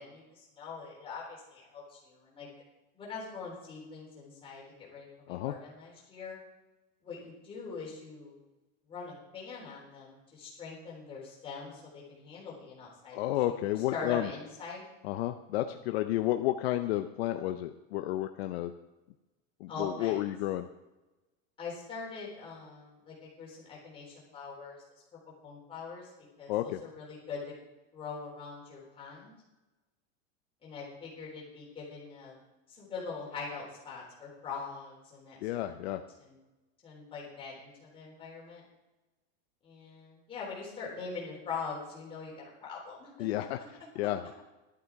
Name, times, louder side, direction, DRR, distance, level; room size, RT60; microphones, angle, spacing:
voice 1, 0.0-2.5 2.9-6.4 7.0-8.4 8.9-13.2 13.6-14.8 19.7-20.3 21.6-24.8 25.4-26.1 26.4-27.5 27.9-29.3 30.6-32.4 32.7-35.4 35.8-36.4 36.8-38.6 39.6-43.3, left 4 dB, 15° left, -4 dB, 3.7 m, -43 dB
voice 2, 13.1-14.3 15.0-18.7 19.6-20.7 26.5-26.8 35.4-36.0 43.2-44.4, left 14 dB, 60° left, 8 dB, 0.7 m, -31 dB
12.0 x 10.5 x 4.7 m, 1.1 s
supercardioid pair, 175°, 35 cm